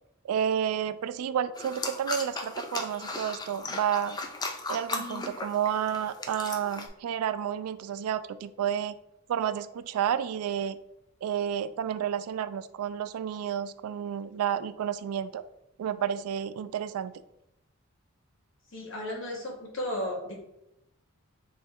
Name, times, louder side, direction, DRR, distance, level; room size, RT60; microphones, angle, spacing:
voice 1, 0.2-4.2 4.7-9.0 9.3-10.8 11.2-15.4 15.8-17.1, right 9 dB, 90° right, 16 dB, 0.3 m, -30 dB
sound 1, 1.6-6.9, left 3 dB, 20° left, 0.3 m, -36 dB
voice 2, 18.7-20.3, left 1 dB, 60° left, -2 dB, 1.2 m, -34 dB
3.9 x 3.1 x 3.6 m, 0.85 s
head